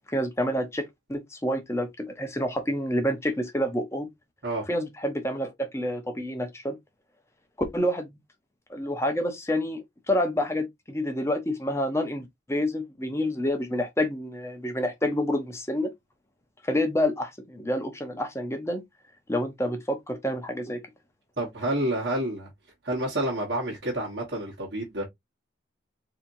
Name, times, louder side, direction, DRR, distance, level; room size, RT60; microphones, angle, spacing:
voice 1, 0.1-4.1 4.7-6.8 7.7-8.1 8.7-15.9 16.6-18.8 19.3-20.8, left 1 dB, 15° left, 0.7 m, -28 dB
voice 2, 21.4-22.5 22.8-25.1, right 1 dB, 55° right, 1.3 m, -29 dB
4.2 x 2.9 x 2.6 m
head